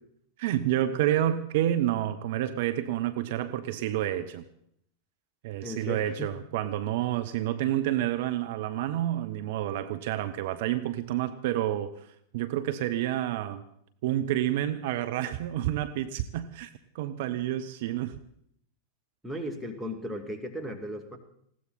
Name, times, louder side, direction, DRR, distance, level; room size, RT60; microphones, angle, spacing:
voice 1, 0.4-4.4 5.4-12.1 12.3-13.6 14.0-18.2, right 12 dB, 50° right, 10 dB, 0.8 m, -29 dB
voice 2, 5.6-6.3 19.2-21.2, equal, ahead, 1 dB, 2.3 m, -36 dB
20.0 x 16.5 x 4.3 m, 0.71 s
figure-of-eight pair, 90°, 0 cm